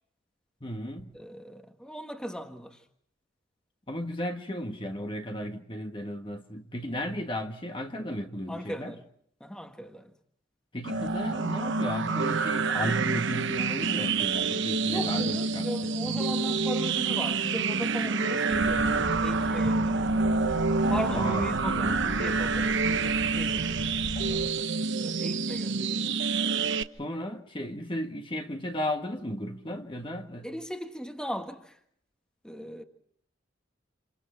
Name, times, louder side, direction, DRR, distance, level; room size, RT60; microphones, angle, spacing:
voice 1, 0.6-1.1 3.9-9.0 10.7-16.2 21.1-22.0 27.0-30.5, equal, 25° left, 1.6 m, -35 dB
voice 2, 1.1-2.8 8.5-9.0 9.4-10.1 14.9-20.2 20.9-24.0 24.9-26.1 30.4-31.8 32.4-32.8, equal, 5° left, 1.6 m, -37 dB
sound 1, 10.8-26.8, right 4 dB, 65° right, 1.0 m, -27 dB
sound 2, 18.5-24.5, equal, 50° left, 7.1 m, -39 dB
28.5 x 28.5 x 4.5 m
head